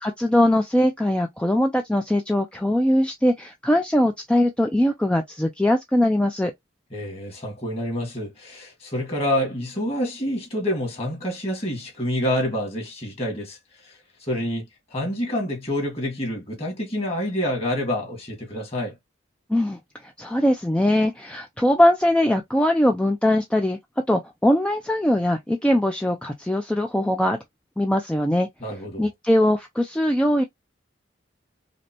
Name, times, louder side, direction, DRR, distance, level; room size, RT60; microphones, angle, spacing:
voice 1, 0.0-6.5 19.5-23.8 24.1-27.4 27.8-28.5 29.0-30.4, left 1 dB, 5° left, 0.3 m, -21 dB
voice 2, 6.9-13.6 13.8-13.9 14.3-14.6 14.9-19.0 28.6-29.1, equal, 30° left, 1.8 m, -27 dB
5.1 x 2.1 x 2.8 m
head